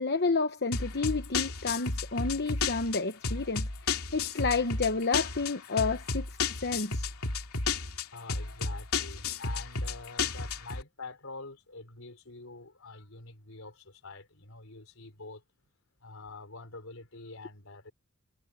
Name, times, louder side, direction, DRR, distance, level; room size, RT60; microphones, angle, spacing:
voice 1, 0.0-7.1, left 4 dB, 50° left, 1.0 m, -30 dB
sound 1, 0.7-10.8, left 4 dB, 90° left, 2.8 m, -32 dB
voice 2, 8.1-15.4 16.0-17.9, left 3 dB, 70° left, 4.8 m, -46 dB
head